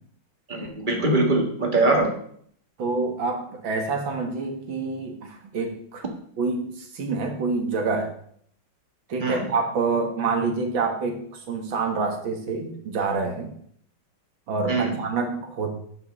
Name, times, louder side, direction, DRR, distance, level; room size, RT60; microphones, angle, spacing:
voice 1, 0.5-2.1 9.2-9.5 14.7-15.0, right 2 dB, 25° right, 2 dB, 1.7 m, -22 dB
voice 2, 2.8-6.1 6.4-8.1 9.1-13.5 14.5-15.7, right 4 dB, 75° right, 4 dB, 2.3 m, -27 dB
8.9 x 5.6 x 6.7 m, 0.63 s
omnidirectional pair, 2.1 m